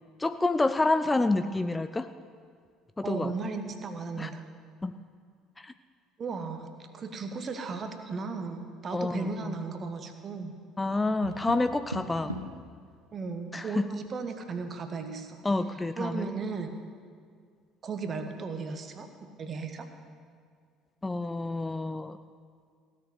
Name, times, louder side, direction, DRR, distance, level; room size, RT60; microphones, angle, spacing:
voice 1, 0.2-2.1 3.0-3.3 4.2-4.3 4.8-4.9 5.6-5.7 8.9-9.6 10.8-12.3 13.5-13.9 15.4-16.3 21.0-22.2, left 2 dB, 15° left, 10 dB, 0.4 m, -28 dB
voice 2, 3.0-4.4 6.2-6.7 6.9-10.5 12.2-12.5 13.1-15.4 16.0-16.7 17.8-19.1 19.4-19.9, right 4 dB, 35° right, 6 dB, 1.3 m, -36 dB
Tap, 10.9-12.7 14.7-15.4, equal, 90° right, 0.5 m, -41 dB
16.0 x 6.5 x 8.4 m, 2.1 s
figure-of-eight pair, 55°, 0 cm